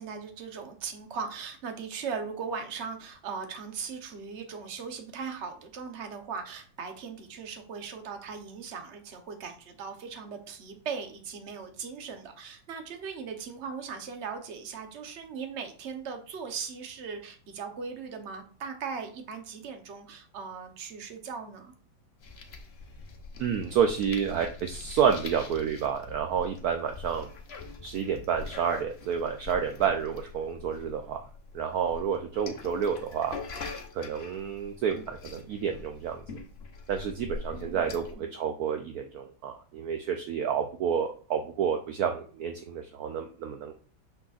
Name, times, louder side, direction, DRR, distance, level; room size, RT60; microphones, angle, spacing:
voice 1, 0.0-21.7 37.5-38.3, right 5 dB, 50° right, 6 dB, 0.9 m, -39 dB
sound 1, 22.2-38.1, left 4 dB, 50° left, 0.7 m, -44 dB
voice 2, 23.4-27.3 27.8-31.2 31.5-33.4 33.9-36.2 36.9-43.7, right 7 dB, 75° right, 5 dB, 0.8 m, -29 dB
6.8 x 6.0 x 2.4 m, 0.42 s
omnidirectional pair, 2.2 m